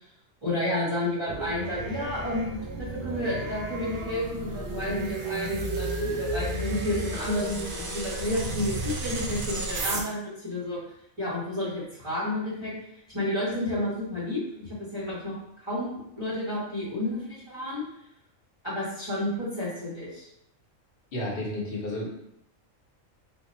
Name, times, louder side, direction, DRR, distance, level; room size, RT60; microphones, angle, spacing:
voice 1, 0.4-10.8 11.2-12.7 13.1-17.8 18.6-20.3, left 1 dB, 25° right, -10 dB, 1.2 m, -31 dB
sound 1, 1.3-10.0, right 2 dB, 55° right, 0.6 m, -33 dB
voice 2, 21.1-22.1, left 1 dB, 50° left, -2 dB, 1.1 m, -31 dB
3.2 x 2.8 x 4.0 m, 0.77 s
omnidirectional pair, 1.3 m